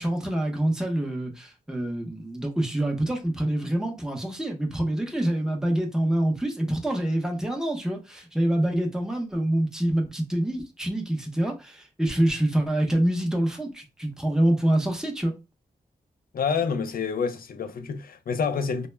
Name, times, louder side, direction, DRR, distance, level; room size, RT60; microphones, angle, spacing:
voice 1, 0.0-15.3, right 1 dB, 5° right, 0.6 m, -26 dB
voice 2, 16.3-18.9, left 5 dB, 70° left, 0.4 m, -28 dB
2.1 x 2.0 x 3.2 m
wide cardioid pair, 125°, 16 cm